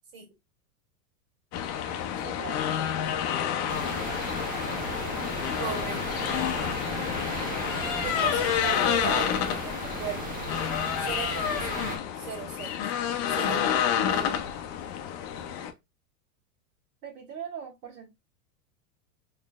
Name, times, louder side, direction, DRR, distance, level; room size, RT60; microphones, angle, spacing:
sound 1, 1.5-15.7, left 9 dB, 35° left, 0.5 m, -29 dB
voice 1, 2.2-2.8 6.5-7.3 17.0-18.1, right 8 dB, 80° right, 1.9 m, -42 dB
sound 2, 3.7-12.0, right 3 dB, 20° right, 0.9 m, -36 dB
voice 2, 5.6-6.4 8.0-10.4 11.0-11.9 12.2-12.8 13.3-14.5, right 7 dB, 65° right, 2.1 m, -37 dB
3.9 x 3.2 x 2.3 m
hypercardioid pair, 120°, 44 cm